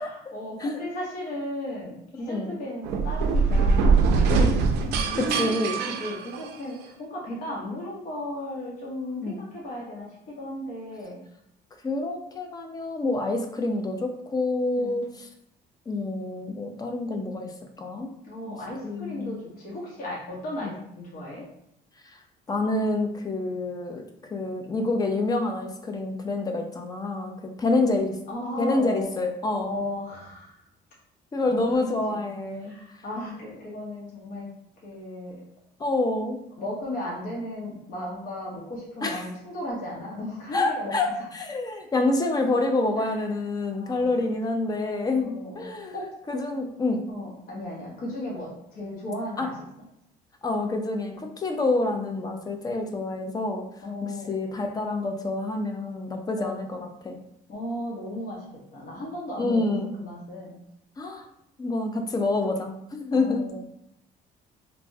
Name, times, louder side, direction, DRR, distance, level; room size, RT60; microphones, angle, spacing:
voice 1, 0.0-4.1 4.8-5.3 5.8-11.2 14.7-15.0 18.2-21.4 28.3-29.1 29.5-30.6 31.4-31.8 32.1-32.2 32.6-34.5 34.8-35.4 36.6-40.9 43.0-43.1 43.7-44.2 45.2-46.1 47.1-49.7 53.8-54.3 56.3-56.6 57.5-58.4 58.7-60.6 63.1-63.6, left 1 dB, 55° left, -5 dB, 0.8 m, -35 dB
sound 1, 2.8-6.8, right 4 dB, 80° right, 0.4 m, -22 dB
voice 2, 5.2-5.8 9.2-9.4 11.8-15.3 15.9-17.5 17.8-18.1 18.5-18.6 18.8-19.4 20.6-20.7 22.5-28.2 28.6-29.7 31.3-32.7 35.8-36.4 39.0-39.2 40.5-41.1 41.3-45.9 46.3-47.0 49.4-49.5 50.4-53.6 54.3-56.8 57.0-57.2 59.4-59.9 61.0-61.3 61.6-63.4, left 2 dB, 20° left, 4 dB, 0.4 m, -27 dB
3.2 x 2.0 x 2.6 m, 0.76 s
cardioid pair, 110°, 17 cm